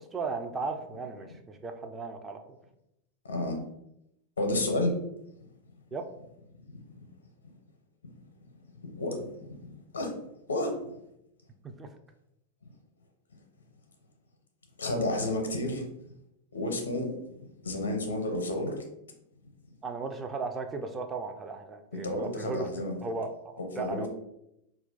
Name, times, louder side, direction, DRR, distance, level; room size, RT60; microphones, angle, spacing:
voice 1, 0.0-2.6 5.9-6.0 11.6-11.9 19.8-22.7 23.0-24.1, right 4 dB, 20° right, 5 dB, 0.3 m, -36 dB
voice 2, 3.2-3.6 4.4-4.9 6.9-7.1 8.7-10.1 10.5-10.8 14.8-15.9 16.5-18.8 21.9-22.9 23.6-24.1, left 1 dB, 70° left, 3 dB, 0.6 m, -31 dB
2.3 x 2.2 x 3.7 m, 0.82 s
figure-of-eight pair, 90°, 0 cm